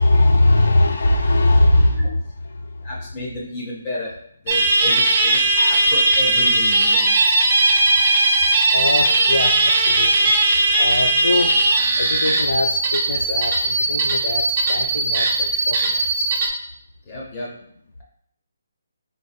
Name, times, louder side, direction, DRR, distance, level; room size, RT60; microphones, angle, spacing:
voice 1, 0.0-2.8 8.7-10.3 10.8-11.5 12.0-16.3, left 2 dB, 75° left, 3 dB, 0.3 m, -21 dB
voice 2, 2.8-4.1 4.4-7.1 17.0-17.5, left 2 dB, 20° left, -3 dB, 0.5 m, -31 dB
sound 1, 4.5-16.5, right 2 dB, 30° right, 0.5 m, -18 dB
4.0 x 3.6 x 2.4 m, 0.68 s
hypercardioid pair, 175°, 0 cm